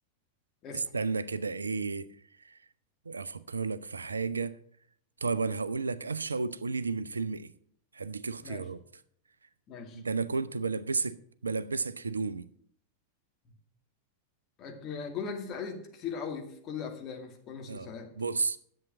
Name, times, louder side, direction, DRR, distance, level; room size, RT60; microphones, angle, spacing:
voice 1, 0.7-2.1 2.4-2.6 3.1-4.6 5.2-7.5 7.9-8.8 9.9-11.2 11.4-12.5 17.7-18.6, right 4 dB, 75° right, 0.5 m, -32 dB
voice 2, 9.7-10.0 14.6-18.1, left 6 dB, 35° left, 2.3 m, -39 dB
10.5 x 7.9 x 6.0 m
figure-of-eight pair, 90°, 0 cm